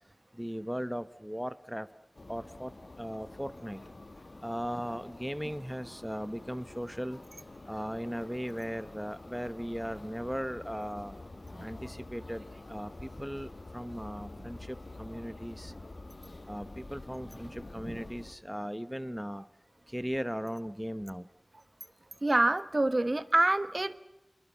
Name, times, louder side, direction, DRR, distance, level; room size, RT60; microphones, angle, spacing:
voice 1, 0.3-1.9 2.3-2.7 3.0-3.8 4.4-7.2 7.7-11.2 11.6-15.7 16.5-19.4 19.9-21.3, equal, 5° right, 14 dB, 0.8 m, -37 dB
sound 1, 2.2-18.4, left 2 dB, 65° left, 1.7 m, -48 dB
voice 2, 22.2-24.0, right 2 dB, 50° right, 14 dB, 1.2 m, -26 dB
25.5 x 21.5 x 8.2 m, 0.96 s
wide cardioid pair, 55°, 0 cm